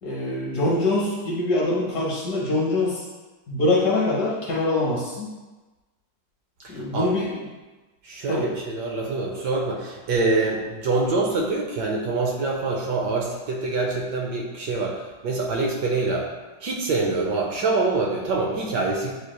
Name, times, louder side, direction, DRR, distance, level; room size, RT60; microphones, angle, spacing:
voice 1, 0.0-3.0 3.5-5.3 6.7-7.4 8.3-8.5, left 2 dB, 60° left, -3 dB, 1.2 m, -24 dB
voice 2, 6.6-7.1 8.0-16.2 16.6-19.1, right 3 dB, 70° right, -1 dB, 1.1 m, -25 dB
7.3 x 3.2 x 2.2 m, 1.2 s
omnidirectional pair, 2.2 m